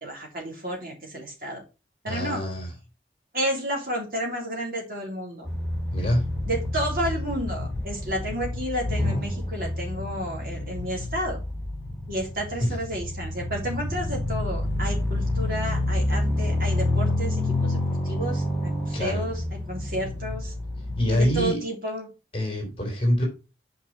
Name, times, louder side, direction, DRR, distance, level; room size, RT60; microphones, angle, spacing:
voice 1, 0.0-1.6 2.0-2.4 3.3-5.5 6.5-11.4 12.1-17.8 18.0-19.4 19.7-20.5 21.1-22.1, equal, 50° right, -1 dB, 3.3 m, -31 dB
voice 2, 2.1-2.7 5.9-6.2 12.6-12.8 18.9-19.3 21.0-21.6 22.3-23.2, equal, 30° left, 2 dB, 3.2 m, -25 dB
sound 1, 5.4-21.5, left 1 dB, 10° left, 3.4 m, -28 dB
6.1 x 5.9 x 4.4 m, 0.30 s
head